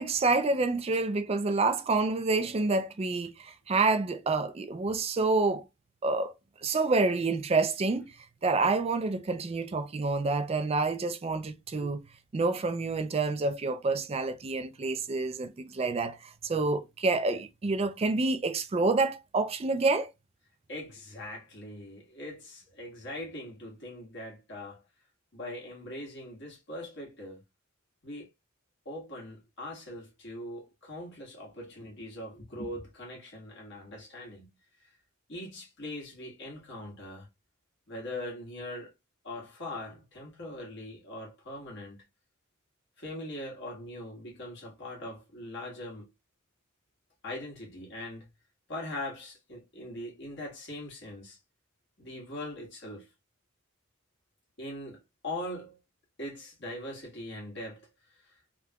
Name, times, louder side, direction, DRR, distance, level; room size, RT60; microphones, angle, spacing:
voice 1, 0.0-5.6 6.0-6.3 6.6-8.1 8.4-12.0 12.3-20.1, right 3 dB, 30° right, 0.4 m, -28 dB
voice 2, 20.7-24.8 25.3-27.4 28.0-28.3 28.8-34.5 35.3-37.3 37.9-38.9 39.2-42.0 43.0-46.1 47.2-48.2 48.7-51.4 52.0-53.1 54.6-55.8 56.2-57.9 58.3-58.4, left 1 dB, 55° left, 1.6 m, -41 dB
3.4 x 2.9 x 2.3 m
head